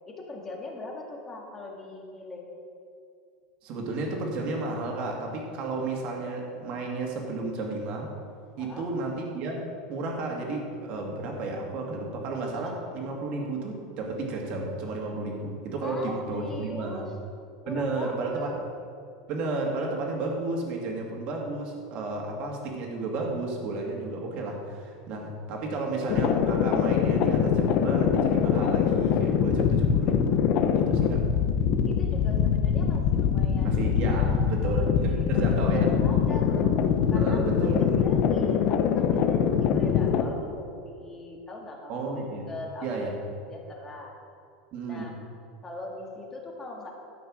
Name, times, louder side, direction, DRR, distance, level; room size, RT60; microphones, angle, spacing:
voice 1, 0.1-2.5 8.6-8.9 15.8-17.1 17.6-18.5 31.9-36.8 37.1-37.4 37.8-43.0 43.5-44.1 44.9-45.2 45.6-46.9, left 2 dB, 15° left, 0 dB, 1.7 m, -41 dB
voice 2, 3.6-8.1 8.6-17.1 17.7-18.7 19.3-31.3 33.6-36.0 37.1-38.1 41.9-42.5 42.8-43.1 44.7-45.1, right 3 dB, 40° right, 0 dB, 2.1 m, -32 dB
sound 1, 26.1-40.2, left 7 dB, 45° left, 0.7 m, -23 dB
12.5 x 6.3 x 6.3 m, 2.5 s
supercardioid pair, 160°, 3 cm